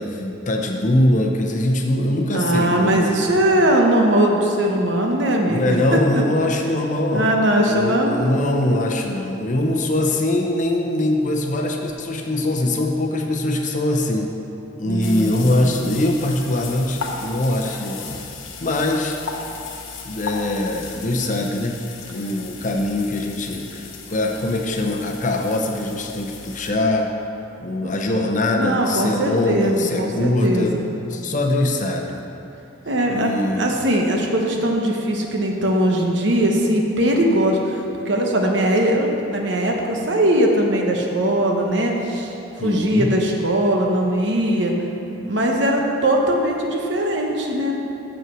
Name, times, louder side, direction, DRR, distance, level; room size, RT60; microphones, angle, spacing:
voice 1, 0.0-3.2 5.5-7.4 7.7-14.3 14.8-18.2 18.6-19.2 20.0-21.8 22.1-27.1 27.6-30.8 31.1-32.2 33.1-33.8 42.6-43.1, left 1 dB, 40° left, 2 dB, 0.7 m, -22 dB
voice 2, 2.3-5.8 7.1-8.2 14.8-15.8 27.8-27.9 28.5-30.8 32.9-33.3 33.6-42.3 42.6-44.8 45.1-47.7, right 1 dB, 65° right, 1 dB, 1.0 m, -20 dB
sound 1, 15.0-26.7, left 4 dB, 80° left, 0.9 m, -36 dB
7.5 x 5.5 x 6.1 m, 2.9 s
head